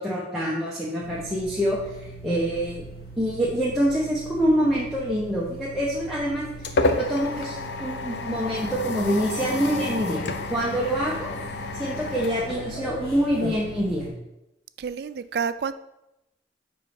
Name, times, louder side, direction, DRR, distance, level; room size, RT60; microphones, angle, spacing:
voice 1, 0.0-1.8 2.2-2.8 3.2-10.2 10.5-11.3 11.7-14.0, equal, ahead, -7 dB, 0.9 m, -26 dB
sound 1, 1.0-14.1, right 2 dB, 60° left, 1.5 m, -40 dB
sound 2, 5.9-13.3, left 3 dB, 80° left, 0.5 m, -30 dB
voice 2, 14.8-15.7, right 6 dB, 60° right, 13 dB, 0.3 m, -29 dB
5.2 x 4.6 x 5.2 m, 0.90 s
head